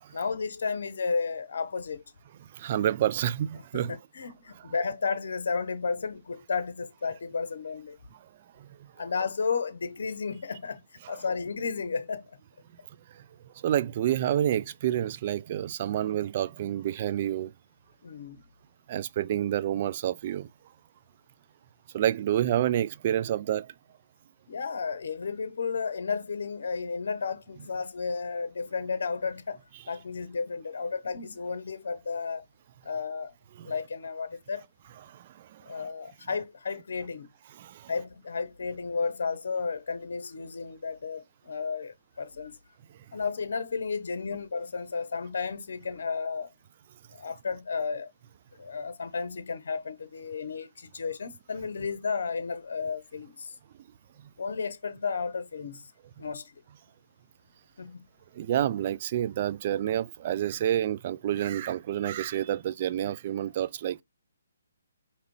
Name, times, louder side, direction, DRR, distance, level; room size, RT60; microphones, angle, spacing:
voice 1, 0.1-2.0 3.7-8.0 9.0-12.3 18.0-18.4 24.5-29.6 29.9-32.4 32.8-33.3 33.6-34.7 35.7-37.3 37.9-42.6 43.1-46.5 47.1-48.1 48.6-53.5 54.4-55.9 56.2-56.6 57.8-58.0, left 5 dB, 65° left, 0.8 m, -33 dB
voice 2, 2.5-4.0 4.5-4.7 8.6-8.7 11.0-11.2 13.6-17.5 18.9-20.5 21.9-23.7 33.5-33.7 35.0-35.8 37.5-37.9 58.4-64.0, right 11 dB, 40° right, 0.3 m, -29 dB
5.0 x 2.8 x 3.0 m
figure-of-eight pair, 145°, 0 cm